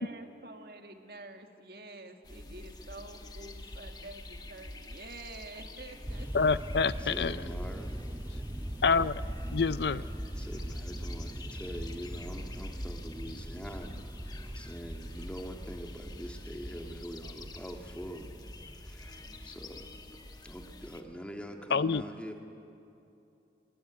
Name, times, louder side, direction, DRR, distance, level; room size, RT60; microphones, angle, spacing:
voice 1, 0.0-6.3, right 2 dB, 60° right, 5 dB, 2.0 m, -48 dB
sound 1, 2.2-21.0, left 2 dB, 25° left, 1.2 m, -48 dB
sound 2, 6.1-20.7, equal, 10° right, 0.6 m, -41 dB
voice 2, 6.3-7.4 8.8-9.2 9.5-10.0 21.7-22.0, left 5 dB, 75° left, 16 dB, 0.6 m, -27 dB
voice 3, 7.0-8.0 10.3-18.3 18.8-19.9 20.4-22.4, equal, 5° left, 3 dB, 1.9 m, -44 dB
27.0 x 21.5 x 9.2 m, 2.8 s
head